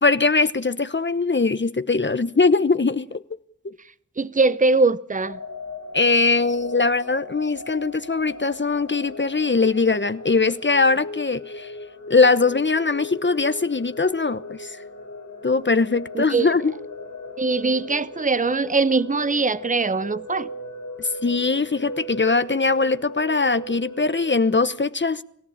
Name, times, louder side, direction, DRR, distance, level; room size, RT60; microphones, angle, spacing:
voice 1, 0.0-3.2 3.6-3.8 5.9-11.7 12.1-14.8 15.4-16.7 21.0-25.2, left 3 dB, 40° left, 1.0 m, -21 dB
voice 2, 4.2-5.4 16.1-16.5 17.4-20.5, right 3 dB, 25° right, 0.9 m, -21 dB
sound 1, 5.2-24.7, left 2 dB, 70° left, 5.2 m, -38 dB
25.5 x 13.5 x 8.8 m
cardioid pair, 45°, 30 cm